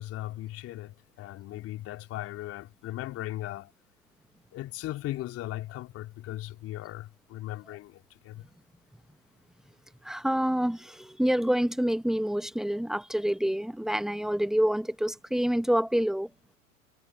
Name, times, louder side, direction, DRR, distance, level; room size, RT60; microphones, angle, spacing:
voice 1, 0.0-3.7 4.5-8.4, left 15 dB, 35° left, 3.9 m, -38 dB
voice 2, 10.0-16.3, equal, ahead, 1.4 m, -27 dB
figure-of-eight pair, 100°, 42 cm